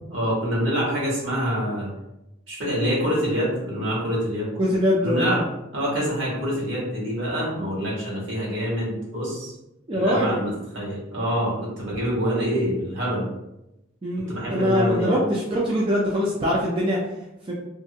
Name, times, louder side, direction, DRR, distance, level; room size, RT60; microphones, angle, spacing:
voice 1, 0.1-1.9 2.5-4.5 5.0-5.4 5.7-9.5 9.9-13.2 14.3-15.2, equal, 70° right, -5 dB, 1.2 m, -26 dB
voice 2, 4.6-5.3 9.9-10.4 14.0-17.0 17.5-17.6, equal, 25° right, -4 dB, 0.4 m, -23 dB
2.5 x 2.5 x 2.7 m, 0.91 s
head